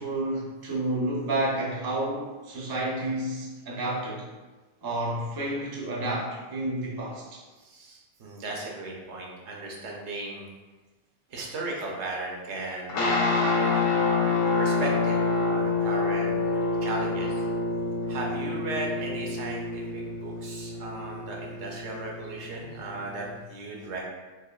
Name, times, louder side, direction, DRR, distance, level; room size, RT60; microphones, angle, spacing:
voice 1, 0.0-4.2 4.8-7.4, right 1 dB, 30° right, -4 dB, 0.5 m, -30 dB
voice 2, 7.6-10.5 11.3-13.9 14.6-17.4 18.1-24.1, right 2 dB, 85° right, -1 dB, 1.0 m, -36 dB
sound 1, 12.9-23.4, left 3 dB, 65° left, 0.7 m, -27 dB
3.4 x 2.9 x 2.3 m, 1.2 s
omnidirectional pair, 1.1 m